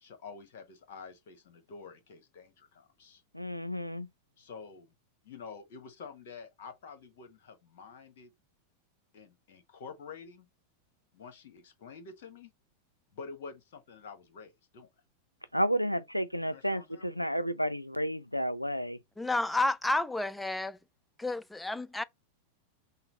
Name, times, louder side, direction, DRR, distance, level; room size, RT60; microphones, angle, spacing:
voice 1, 0.0-3.2 4.4-4.9 5.2-8.3 9.1-10.5 11.1-12.5 13.1-14.9 16.5-17.0, left 5 dB, 55° left, 1.2 m, -48 dB
voice 2, 3.3-4.1 15.5-19.0, equal, 90° left, 0.4 m, -31 dB
voice 3, 19.2-20.8 21.2-22.0, left 2 dB, 5° left, 0.4 m, -30 dB
5.6 x 2.0 x 3.9 m
figure-of-eight pair, 90°, 0 cm